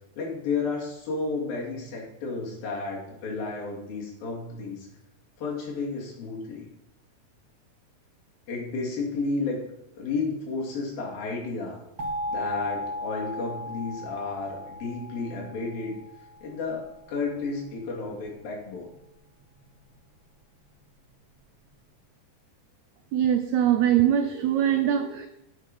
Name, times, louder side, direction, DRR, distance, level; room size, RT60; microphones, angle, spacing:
voice 1, 0.2-4.9 5.4-6.7 8.5-9.6 10.0-11.8 12.3-16.0 16.4-18.9, left 4 dB, 90° left, -2 dB, 4.4 m, -32 dB
sound 1, 12.0-16.7, left 1 dB, 50° right, 1.5 m, -36 dB
voice 2, 23.1-25.3, right 10 dB, 85° right, 8 dB, 1.6 m, -22 dB
9.5 x 8.4 x 5.4 m, 0.85 s
omnidirectional pair, 4.0 m